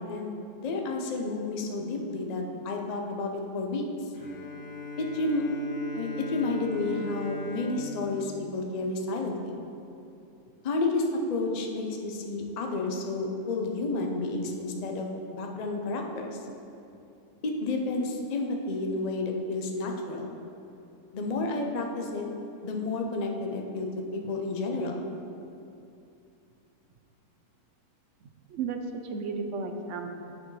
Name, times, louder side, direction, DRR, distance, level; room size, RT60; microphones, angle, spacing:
voice 1, 0.0-3.8 5.0-5.5 5.9-9.6 10.6-16.4 17.4-20.3 21.1-22.2 22.6-25.0, left 2 dB, 80° left, 2 dB, 0.3 m, -31 dB
Bowed string instrument, 4.1-9.6, left 1 dB, 35° left, 1.2 m, -40 dB
voice 2, 28.5-30.1, right 4 dB, 65° right, 5 dB, 0.8 m, -34 dB
9.0 x 5.8 x 3.2 m, 2.7 s
omnidirectional pair, 1.6 m